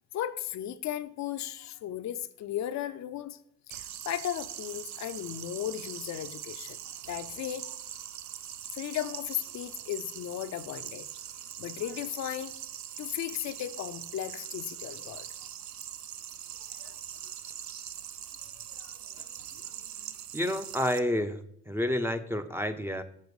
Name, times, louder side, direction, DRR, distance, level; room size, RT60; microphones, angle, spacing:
voice 1, 0.1-3.4 3.7-6.8 7.1-7.7 8.7-11.1 11.6-12.5 13.0-15.3 16.8-16.9 18.8-19.3 19.5-19.8, left 11 dB, 65° left, 11 dB, 0.5 m, -36 dB
sound 1, 3.7-21.0, right 10 dB, 65° right, 0.6 m, -42 dB
voice 2, 20.3-21.4 21.7-23.0, left 1 dB, 10° right, 9 dB, 0.5 m, -29 dB
6.7 x 4.3 x 4.8 m, 0.67 s
cardioid pair, 90°, 30 cm